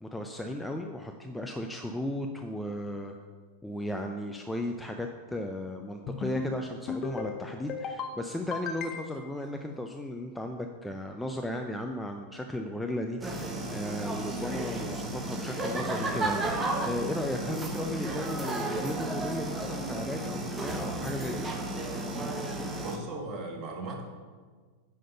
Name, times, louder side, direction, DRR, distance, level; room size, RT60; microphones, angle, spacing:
voice 1, 0.0-3.2 3.6-21.5, left 1 dB, 5° left, 3 dB, 0.6 m, -35 dB
sound 1, 6.1-6.5 6.9-7.3 7.7-8.1 8.5-9.3, left 5 dB, 30° left, 0.9 m, -35 dB
sound 2, 13.2-23.0, right 2 dB, 15° right, 1.2 m, -33 dB
voice 2, 22.8-24.0, right 2 dB, 30° right, 0 dB, 2.0 m, -37 dB
10.0 x 5.8 x 5.6 m, 1.5 s
figure-of-eight pair, 90°, 0 cm